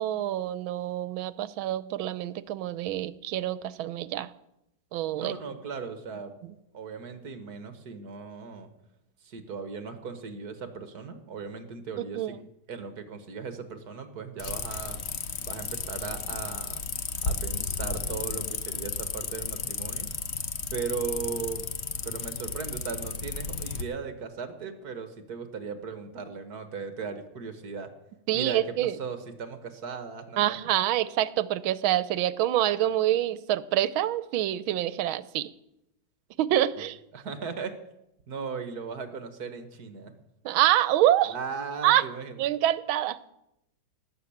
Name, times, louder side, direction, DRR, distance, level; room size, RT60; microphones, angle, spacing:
voice 1, 0.0-4.3 4.9-5.3 12.0-12.3 28.3-29.0 30.4-35.5 36.4-37.0 40.4-41.3 41.8-42.0 42.4-43.3, right 13 dB, 80° right, 17 dB, 1.5 m, -26 dB
voice 2, 5.1-6.3 6.7-8.7 9.2-12.3 12.7-15.0 15.4-16.8 17.2-20.1 20.7-21.7 22.0-27.9 28.3-30.6 37.1-37.7 38.3-40.1 41.3-42.3, right 5 dB, 50° right, 9 dB, 1.7 m, -37 dB
sound 1, 14.4-23.8, left 5 dB, 45° left, 0.9 m, -33 dB
18.5 x 7.1 x 8.5 m, 0.85 s
omnidirectional pair, 2.2 m